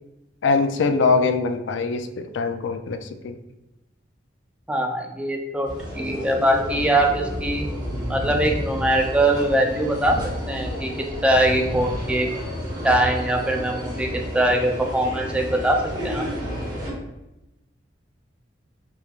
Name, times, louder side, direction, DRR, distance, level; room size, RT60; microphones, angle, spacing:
voice 1, 0.4-3.4, left 4 dB, 80° left, 8 dB, 0.4 m, -22 dB
voice 2, 4.7-5.7 5.9-7.6 8.1-10.2 10.5-10.9 11.2-12.3 12.8-14.1 14.3-16.2, right 1 dB, 5° right, 2 dB, 0.4 m, -22 dB
sound 1, 5.6-16.9, equal, 25° right, 1.1 m, -31 dB
4.7 x 3.3 x 2.4 m, 0.95 s
head